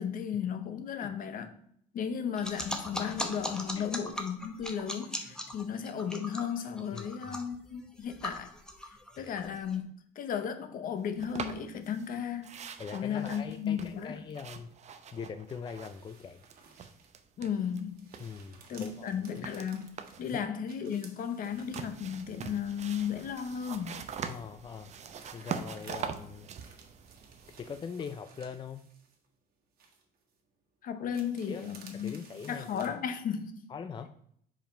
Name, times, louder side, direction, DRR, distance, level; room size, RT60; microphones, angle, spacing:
voice 1, 0.0-1.5 1.9-8.5 9.2-9.9 10.2-12.6 12.9-14.1 17.4-18.0 18.7-24.0 30.8-32.2 32.5-33.7, left 8 dB, 55° left, 0.8 m, -35 dB
sound 1, 2.4-9.8, equal, 5° left, 0.8 m, -39 dB
sound 2, 11.2-12.1 12.4-16.2 16.4-17.8 18.1-20.3 21.5-27.8, right 7 dB, 45° right, 0.6 m, -43 dB
voice 2, 12.8-14.7 15.1-16.4 18.2-19.1 19.4-19.5 20.3-20.4 24.2-24.9 25.3-26.5 27.6-28.8 31.5-31.6 31.9-32.9 33.7-34.1, left 6 dB, 30° left, 0.4 m, -42 dB
sound 3, 15.7-17.3 17.7-22.4 22.8-24.5 24.8-29.4 29.8-30.4 31.1-32.9, right 5 dB, 60° right, 1.5 m, -57 dB
5.3 x 4.9 x 4.3 m
cardioid pair, 110°, 17 cm